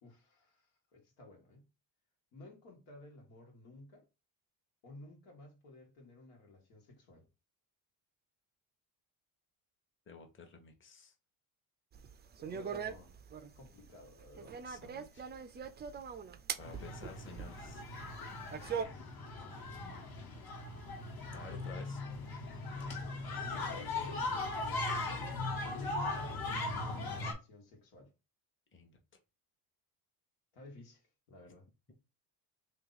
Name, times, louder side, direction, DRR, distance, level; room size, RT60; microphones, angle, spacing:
voice 1, 0.0-1.7 2.3-4.0 4.8-7.3 12.4-13.1 13.5-14.6 18.6-19.3 22.8-23.2 23.4-25.0 25.6-28.1 30.5-31.6, left 2 dB, 90° left, 1.7 m, -55 dB
voice 2, 10.1-11.1 14.6-15.3 15.5-15.7 16.6-17.8 19.8-20.3 21.3-22.0 28.7-29.0, left 4 dB, 25° left, 1.0 m, -53 dB
sound 1, 11.9-18.8, right 7 dB, 25° right, 0.4 m, -42 dB
sound 2, 16.6-27.3, left 2 dB, 50° left, 1.3 m, -39 dB
2.9 x 2.8 x 3.9 m
supercardioid pair, 85°, 48 cm